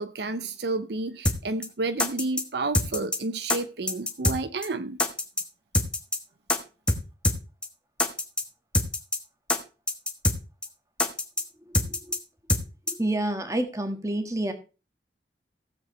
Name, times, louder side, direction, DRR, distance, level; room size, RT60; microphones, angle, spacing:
voice 1, 0.0-5.0, right 3 dB, 65° right, 0.6 m, -31 dB
sound 1, 1.3-1.4 1.6-1.7 2.0-2.4 2.7-3.2 3.5-3.6 3.9-4.4 4.6-4.7 5.0-5.4 5.7-6.2 6.5-6.6 6.9-7.0 7.2-7.4 7.6-7.7 8.0-8.4 8.7-9.2 9.5-9.6 9.9-10.4 10.6-10.7 11.0-11.4 11.7-12.2 12.5-12.6 12.9-13.0, left 2 dB, 5° left, 1.3 m, -24 dB
voice 2, 11.6-12.2 12.9-14.5, right 1 dB, 15° right, 1.5 m, -29 dB
16.5 x 7.8 x 3.1 m
head